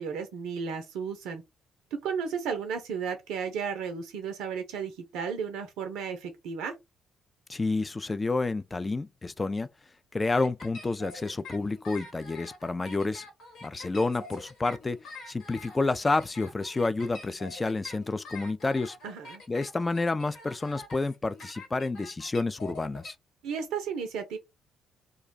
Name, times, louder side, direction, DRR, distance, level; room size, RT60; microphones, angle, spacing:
voice 1, 0.0-1.4 2.0-6.7 19.0-19.4 23.4-24.4, right 6 dB, 70° right, 0.4 m, -34 dB
voice 2, 7.5-9.7 10.1-13.3 13.6-15.0 15.3-19.0 19.5-23.2, left 3 dB, 25° left, 0.4 m, -29 dB
sound 1, 10.3-23.1, left 3 dB, 65° left, 1.1 m, -46 dB
2.4 x 2.2 x 3.9 m
hypercardioid pair, 45°, 0 cm